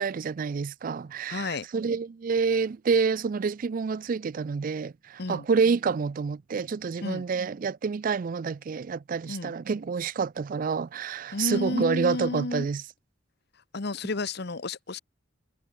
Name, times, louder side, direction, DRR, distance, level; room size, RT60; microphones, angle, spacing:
voice 1, 0.0-12.8, right 5 dB, 45° right, 0.4 m, -28 dB
voice 2, 1.3-1.6 5.2-5.5 7.0-7.2 9.3-9.5 11.3-12.7 13.7-15.0, left 3 dB, 55° left, 1.0 m, -31 dB
head